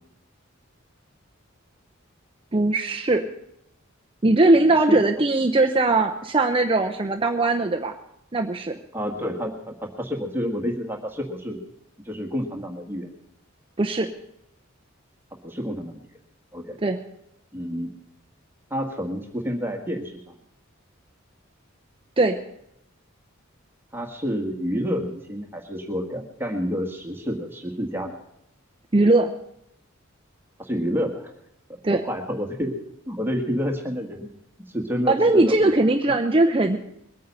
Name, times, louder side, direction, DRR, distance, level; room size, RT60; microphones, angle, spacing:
voice 1, 2.5-3.3 4.2-8.0 8.3-8.8 13.8-14.1 16.8-17.0 22.2-22.4 28.9-29.3 31.8-32.0 35.1-36.8, right 2 dB, 25° right, 4 dB, 0.7 m, -20 dB
voice 2, 8.9-11.6 12.0-13.1 15.4-16.0 16.5-16.8 17.5-17.9 18.7-20.3 23.9-28.2 30.6-31.3 31.9-34.4 34.7-35.6 36.1-36.2, equal, 10° right, 2 dB, 1.6 m, -29 dB
22.0 x 9.3 x 5.5 m, 0.78 s
head